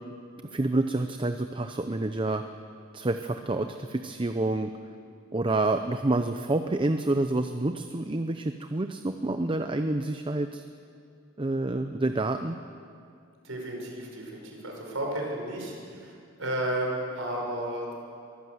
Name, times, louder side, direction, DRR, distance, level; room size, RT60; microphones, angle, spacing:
voice 1, 0.5-2.4 2.9-4.7 5.3-10.6 11.4-12.6, right 2 dB, 25° right, 7 dB, 0.6 m, -28 dB
voice 2, 13.4-17.9, right 1 dB, 85° right, 0 dB, 5.5 m, -33 dB
23.0 x 15.0 x 8.0 m, 2.3 s
head